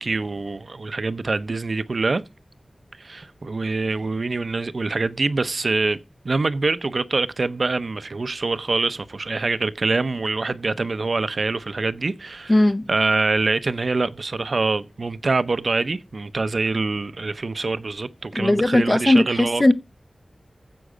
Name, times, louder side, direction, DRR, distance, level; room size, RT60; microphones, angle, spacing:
voice 1, 0.0-2.2 3.0-6.0 6.2-12.6 12.9-19.7, right 3 dB, 60° right, 0.6 m, -25 dB
voice 2, 12.5-12.9 18.4-19.7, left 1 dB, 30° left, 0.7 m, -18 dB
13.0 x 7.7 x 5.0 m
wide cardioid pair, 90°, 0 cm